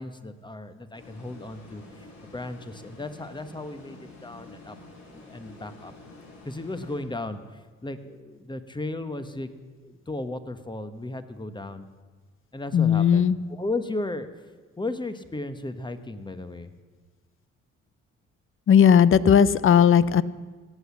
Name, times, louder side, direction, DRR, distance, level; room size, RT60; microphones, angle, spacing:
voice 1, 0.0-4.8 5.1-5.9 6.4-9.5 9.8-11.9 12.5-13.2 13.5-14.5 14.8-16.7, left 2 dB, 15° left, 10 dB, 1.0 m, -35 dB
sound 1, 0.9-7.6, left 2 dB, 60° left, 4.1 m, -48 dB
voice 2, 12.7-13.4 18.7-20.2, left 8 dB, 45° left, 18 dB, 0.6 m, -17 dB
17.0 x 8.0 x 7.1 m, 1.4 s
cardioid pair, 90°, 30 cm